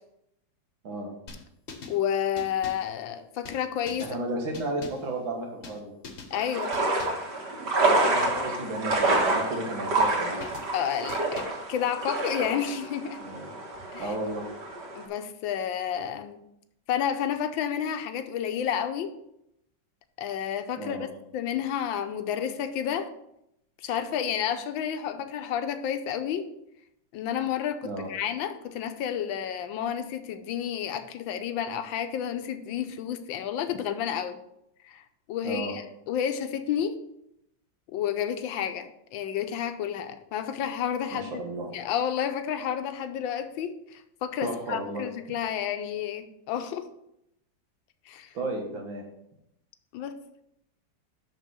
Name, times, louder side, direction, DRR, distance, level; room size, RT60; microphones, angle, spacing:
sound 1, 1.3-2.0 2.4-2.9 3.5-4.2 4.5-5.1 5.6-5.8 6.0-6.3 6.7-7.3 7.8-8.5 8.9-9.5 10.0-10.7 11.1-11.7, left 4 dB, 45° left, 1.0 m, -43 dB
voice 1, 1.9-4.2 6.3-6.8 10.7-13.2 13.9-14.1 14.9-16.4 16.9-19.1 20.2-21.1 21.3-23.1 23.8-26.5 27.1-34.4 34.8-37.0 37.9-41.4 41.7-46.9 48.1-48.3 49.9-50.2, left 9 dB, 85° left, 1.5 m, -30 dB
voice 2, 4.0-5.9 7.9-10.4 13.2-13.5 14.0-14.4 20.8-21.1 27.8-28.1 35.4-35.7 41.1-41.7 44.4-45.0 48.3-49.0, right 2 dB, 90° right, 2.4 m, -33 dB
sound 2, 6.3-15.0, right 2 dB, 60° right, 2.2 m, -28 dB
6.3 x 5.9 x 6.2 m
omnidirectional pair, 2.1 m